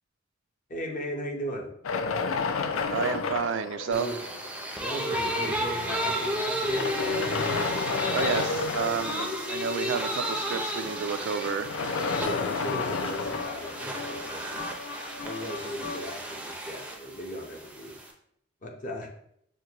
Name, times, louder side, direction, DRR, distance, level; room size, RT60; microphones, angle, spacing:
voice 1, 0.7-1.7 3.9-4.2 4.8-6.9 12.2-14.7 15.2-18.0 18.6-19.1, equal, 40° left, 0 dB, 0.7 m, -36 dB
sound 1, 1.8-4.6 5.4-5.5 6.6-9.6 11.5-14.5, left 4 dB, 90° left, 0.4 m, -31 dB
voice 2, 2.9-4.1 8.1-11.7, right 6 dB, 65° right, 11 dB, 0.3 m, -30 dB
sound 2, 3.9-18.1, equal, 5° right, 0.5 m, -33 dB
sound 3, 9.0-16.4, left 4 dB, 65° left, 1.4 m, -41 dB
6.2 x 2.2 x 2.8 m, 0.70 s
head